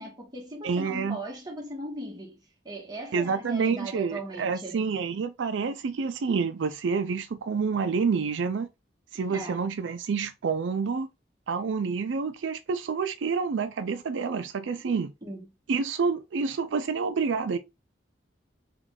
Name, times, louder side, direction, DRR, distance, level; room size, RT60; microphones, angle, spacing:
voice 1, 0.0-2.4 2.6-4.8 9.3-9.6 14.7-14.8 15.2-15.5, right 1 dB, 20° right, 1.5 m, -38 dB
voice 2, 0.6-1.2 3.1-8.7 9.1-11.1 11.5-15.1 15.7-17.6, right 5 dB, 85° right, 0.4 m, -28 dB
3.5 x 3.1 x 3.6 m
head